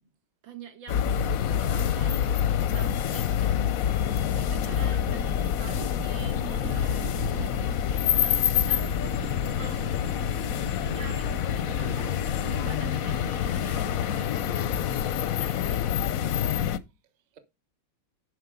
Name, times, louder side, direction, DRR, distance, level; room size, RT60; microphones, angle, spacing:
voice 1, 0.4-2.3 2.7-3.6 4.3-7.1 7.8-8.9 9.5-10.3 10.8-12.2 12.5-15.9, right 7 dB, 80° right, 2.2 m, -46 dB
sound 1, 0.9-16.8, left 9 dB, 65° left, 0.9 m, -27 dB
voice 2, 4.0-4.9 5.7-5.9 10.2-10.3, right 4 dB, 30° right, 1.0 m, -49 dB
sound 2, 4.8-15.0, right 7 dB, 60° right, 1.0 m, -42 dB
11.5 x 5.0 x 5.0 m
omnidirectional pair, 2.1 m